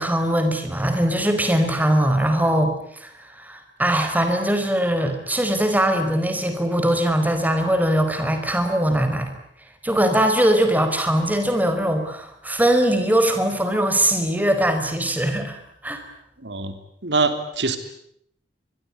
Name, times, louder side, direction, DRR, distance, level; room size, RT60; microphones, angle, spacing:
voice 1, 0.0-9.3 9.8-15.6 15.8-16.0, right 1 dB, 10° right, 7 dB, 4.6 m, -21 dB
voice 2, 16.4-16.7 17.0-17.8, right 3 dB, 75° right, 9 dB, 3.2 m, -23 dB
25.0 x 22.5 x 9.9 m, 0.69 s
head